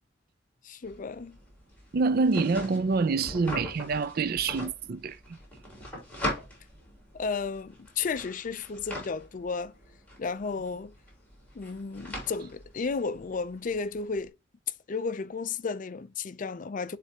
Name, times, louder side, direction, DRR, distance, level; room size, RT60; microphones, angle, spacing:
voice 1, 0.6-1.4 7.1-9.7 10.2-10.9 11.5-14.3 14.9-17.0, left 4 dB, 45° left, 0.4 m, -33 dB
sound 1, 0.8-14.3, left 1 dB, 10° left, 3.0 m, -42 dB
voice 2, 1.9-5.4, right 4 dB, 50° right, 0.4 m, -26 dB
9.9 x 3.3 x 2.8 m
head